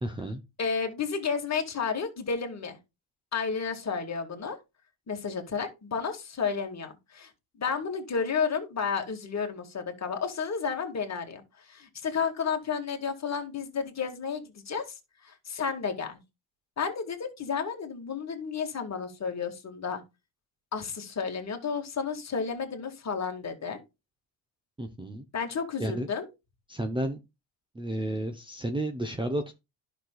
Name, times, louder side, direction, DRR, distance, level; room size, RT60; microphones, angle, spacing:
voice 1, 0.0-0.4 24.8-25.2 25.8-26.1 26.7-27.2 27.7-29.5, right 1 dB, 10° right, 0.8 m, -32 dB
voice 2, 0.6-2.8 3.3-4.6 5.1-14.9 15.2-16.2 16.8-20.0 20.7-23.8 25.3-26.3, left 6 dB, 30° left, 2.1 m, -32 dB
11.5 x 6.2 x 2.4 m
supercardioid pair, 95°, 50 cm